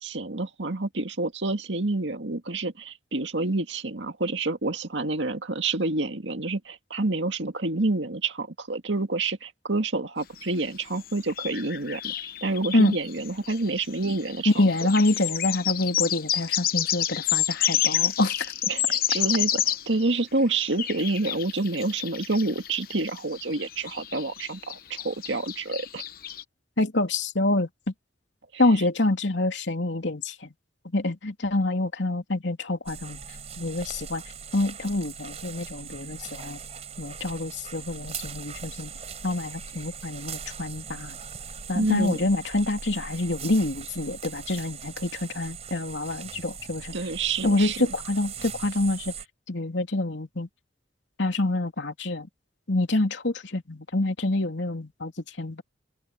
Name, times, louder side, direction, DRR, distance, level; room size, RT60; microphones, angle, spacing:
voice 1, 0.0-12.1 12.4-14.5 18.7-26.0 28.5-28.6 41.8-42.3 46.9-47.9, right 2 dB, 80° right, 2.0 m, -28 dB
sound 1, 10.4-10.5 11.1-20.1 20.6-26.4, left 11 dB, 50° left, 1.0 m, -29 dB
voice 2, 14.4-18.5 26.8-27.7 28.6-30.5 30.9-33.2 33.6-34.2 34.5-36.6 37.0-38.9 39.2-41.2 41.7-46.9 47.4-49.1 49.5-50.5 51.2-52.3 52.7-55.1 55.4-55.6, left 2 dB, 80° left, 2.9 m, -26 dB
sound 2, 32.9-49.3, right 6 dB, 35° right, 4.7 m, -40 dB
open air
head